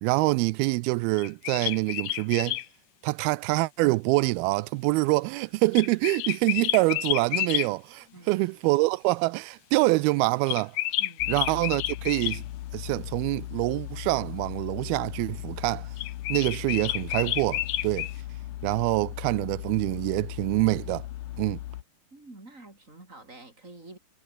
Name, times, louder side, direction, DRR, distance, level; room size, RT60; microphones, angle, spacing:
voice 1, 0.0-2.6 3.0-10.8 11.3-12.4 12.7-15.9 16.3-18.1 18.6-21.1 21.4-21.6, right 22 dB, 90° right, 2.5 m, -25 dB
sound 1, 1.2-2.7 5.7-7.7 10.5-12.4 16.0-18.1, left 16 dB, 90° left, 3.0 m, -30 dB
voice 2, 11.0-11.3 22.1-24.0, right 2 dB, 20° right, 6.4 m, -48 dB
sound 2, 11.2-21.8, left 14 dB, 70° left, 2.2 m, -38 dB
omnidirectional pair, 4.3 m